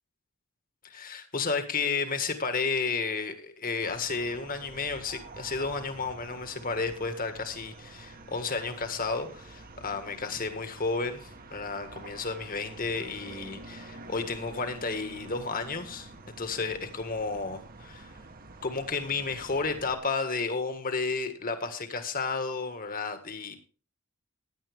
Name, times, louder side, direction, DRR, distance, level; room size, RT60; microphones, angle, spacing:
voice 1, 0.8-18.2 18.6-23.6, left 4 dB, 45° left, 8 dB, 1.8 m, -32 dB
sound 1, 3.8-19.9, right 2 dB, 45° right, 1.1 m, -47 dB
16.0 x 10.5 x 3.6 m, 0.39 s
head